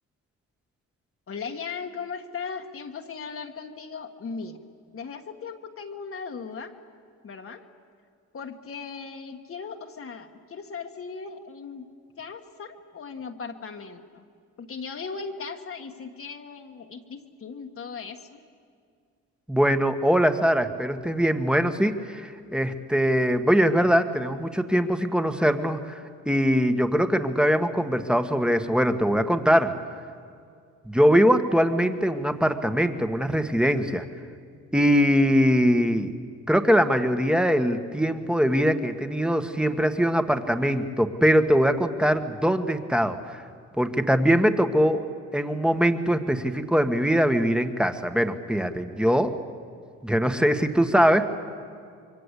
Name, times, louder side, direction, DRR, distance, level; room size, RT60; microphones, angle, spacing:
voice 1, 1.3-4.6 4.9-6.8 7.2-7.6 8.3-11.9 12.2-14.2 14.6-18.4, left 5 dB, 45° left, 4 dB, 1.7 m, -38 dB
voice 2, 19.5-26.0 26.2-29.7 30.8-34.0 34.7-36.1 36.5-43.4 43.8-45.0 45.3-49.3 50.0-51.3, equal, 5° right, 8 dB, 1.6 m, -22 dB
26.0 x 23.5 x 8.4 m, 2.2 s
cardioid pair, 90°, 30 cm